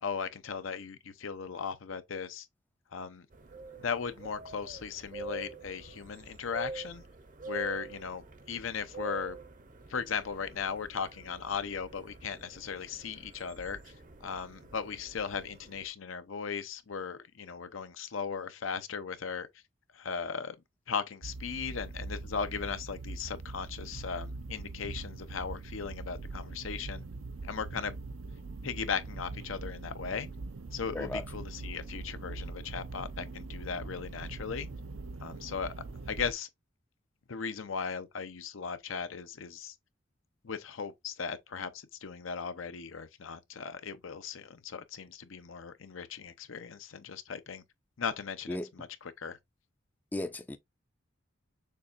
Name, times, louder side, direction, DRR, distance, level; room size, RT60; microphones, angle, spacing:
voice 1, 0.0-2.5 2.9-3.3 3.8-7.0 7.5-9.4 9.9-13.9 14.2-19.5 19.9-20.5 20.9-27.1 27.4-27.9 28.6-30.3 30.7-34.7 35.2-35.7 36.1-36.5 37.3-39.7 40.4-47.6 48.0-49.4, left 6 dB, 80° left, 0.6 m, -37 dB
sound 1, 3.3-15.9, right 2 dB, 40° right, 0.7 m, -46 dB
sound 2, 21.2-36.3, right 3 dB, 80° right, 0.5 m, -42 dB
voice 2, 50.1-50.6, left 1 dB, 10° left, 0.4 m, -35 dB
6.7 x 2.9 x 2.5 m
head